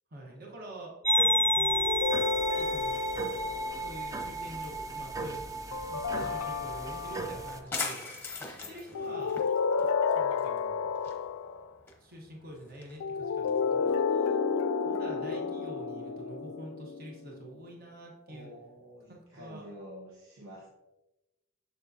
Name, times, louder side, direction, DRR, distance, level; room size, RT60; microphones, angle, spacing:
voice 1, 0.1-0.9 1.3-1.9 2.3-3.0 3.8-8.0 8.4-9.4 10.1-10.9 12.0-14.4 14.8-18.5 19.1-19.7, right 1 dB, 45° right, -1 dB, 1.1 m, -46 dB
sound 1, 1.0-7.6, equal, 15° right, 0.3 m, -31 dB
sound 2, 1.6-4.0 5.7-7.6 8.9-11.7 13.0-17.5, left 6 dB, 75° left, 0.3 m, -31 dB
sound 3, 4.3-14.0, left 4 dB, 10° left, 0.9 m, -44 dB
voice 2, 8.4-9.2 18.3-20.7, equal, 70° right, -4 dB, 1.1 m, -49 dB
6.9 x 6.6 x 2.7 m, 1.0 s
head